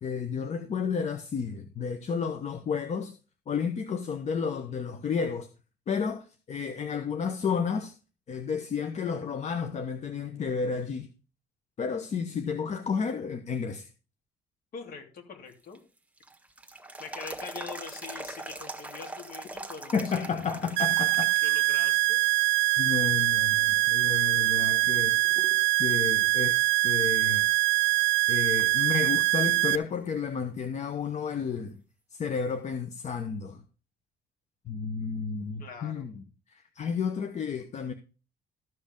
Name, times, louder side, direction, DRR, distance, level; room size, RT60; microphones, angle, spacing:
voice 1, 0.0-3.1 3.5-5.5 5.9-7.9 8.3-11.1 11.8-13.9 19.9-21.4 22.8-25.2 25.8-27.5 28.3-31.8 32.1-33.6 34.7-37.9, left 6 dB, 45° left, 1.0 m, -32 dB
voice 2, 14.7-15.8 17.0-20.4 21.4-22.2 35.6-36.1, left 5 dB, 60° left, 3.0 m, -43 dB
sound 1, 15.5-21.6 22.0-22.1 22.9-23.3 23.9-24.0 24.4-25.7 26.0-26.1 29.4-29.5 32.5-32.6, right 2 dB, 10° right, 1.4 m, -42 dB
sound 2, 20.8-29.8, right 20 dB, 80° right, 0.5 m, -24 dB
13.5 x 5.3 x 5.2 m
cardioid pair, 110°, 17 cm